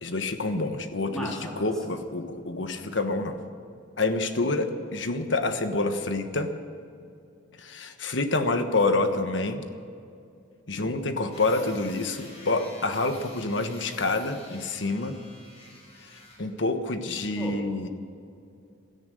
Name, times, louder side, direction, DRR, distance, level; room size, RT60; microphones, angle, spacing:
voice 1, 0.0-1.3 1.6-3.4 4.0-6.5 7.6-9.7 10.7-15.2 16.4-17.9, left 2 dB, 70° left, 8 dB, 1.2 m, -27 dB
voice 2, 1.1-1.7 17.4-17.6, equal, 5° left, -2 dB, 3.2 m, -36 dB
sound 1, 11.3-16.4, left 2 dB, 35° left, 5.0 m, -49 dB
17.0 x 13.5 x 6.4 m, 2.5 s
head